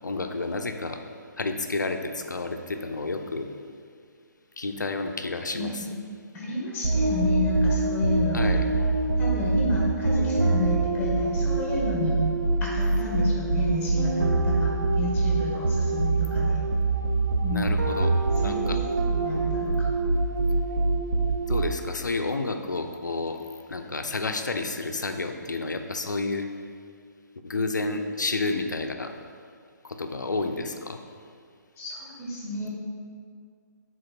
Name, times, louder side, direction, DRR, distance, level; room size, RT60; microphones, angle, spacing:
voice 1, 0.0-1.0 1.4-3.5 4.6-5.7 8.3-8.7 17.5-18.8 21.3-26.5 27.4-29.2 29.8-31.0, left 3 dB, 75° left, 6 dB, 0.6 m, -30 dB
voice 2, 5.5-5.9 6.3-8.5 9.2-12.2 12.6-16.6 17.4-17.7 18.4-18.7 19.1-19.9 31.8-32.7, left 2 dB, 15° left, -4 dB, 1.6 m, -31 dB
sound 1, 6.8-22.0, right 3 dB, 75° right, 0.6 m, -24 dB
7.7 x 3.8 x 4.3 m, 2.1 s
figure-of-eight pair, 135°, 10 cm